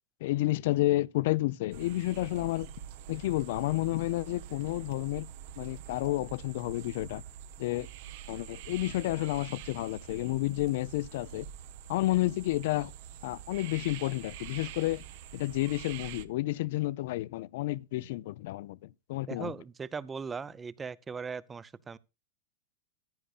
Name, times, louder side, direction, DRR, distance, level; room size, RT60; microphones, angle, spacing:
voice 1, 0.2-2.7 3.1-5.3 5.6-7.2 7.6-7.9 8.3-11.5 11.9-12.9 13.2-15.0 15.3-19.5, left 17 dB, 65° left, 0.4 m, -30 dB
sound 1, 1.7-16.2, right 10 dB, 60° right, 0.9 m, -46 dB
voice 2, 19.3-22.0, right 5 dB, 20° right, 0.6 m, -39 dB
14.5 x 9.9 x 2.4 m
hypercardioid pair, 105°, 0 cm